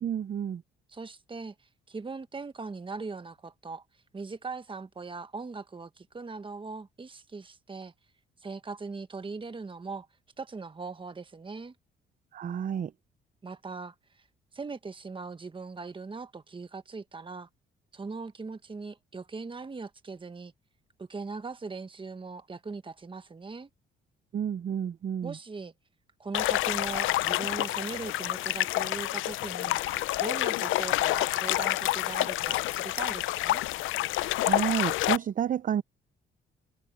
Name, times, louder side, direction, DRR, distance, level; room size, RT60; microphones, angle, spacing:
voice 1, 0.0-0.6 12.3-12.9 24.3-25.4 34.4-35.8, right 9 dB, 45° right, 0.5 m, -30 dB
voice 2, 0.9-1.5 1.9-3.8 4.1-7.9 8.4-10.1 10.4-11.7 13.4-13.9 14.5-17.5 17.9-20.5 21.0-23.7 25.2-25.7 26.2-29.8 30.2-33.6, right 4 dB, 25° right, 1.4 m, -40 dB
sound 1, 26.3-35.2, left 16 dB, 80° left, 0.5 m, -28 dB
cardioid pair, 90°, 20 cm